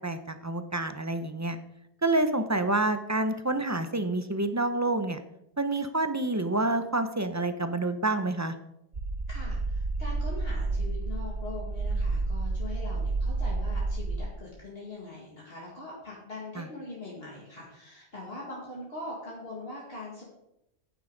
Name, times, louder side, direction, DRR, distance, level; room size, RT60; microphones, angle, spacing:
voice 1, 0.0-1.6 2.0-5.2 5.6-8.5 16.6-16.7, right 2 dB, 20° right, 9 dB, 0.5 m, -28 dB
sound 1, 8.9-14.2, right 3 dB, 55° right, 1.9 m, -30 dB
voice 2, 9.3-20.2, left 2 dB, 60° left, -5 dB, 2.5 m, -42 dB
10.5 x 9.3 x 3.9 m, 0.83 s
omnidirectional pair, 1.2 m